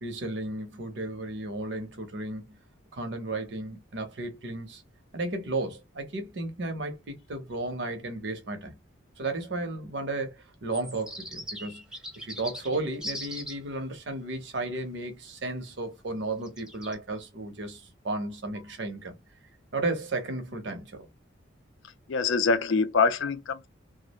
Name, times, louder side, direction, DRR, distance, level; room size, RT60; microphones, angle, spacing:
voice 1, 0.0-2.6 2.9-4.8 5.1-8.8 9.2-11.8 12.2-19.2 19.7-21.1, right 2 dB, 65° right, 0.7 m, -34 dB
sound 1, 10.7-13.6 16.4-16.9, equal, 5° right, 0.5 m, -39 dB
voice 2, 22.1-23.7, left 4 dB, 75° left, 0.4 m, -24 dB
2.4 x 2.0 x 2.8 m
head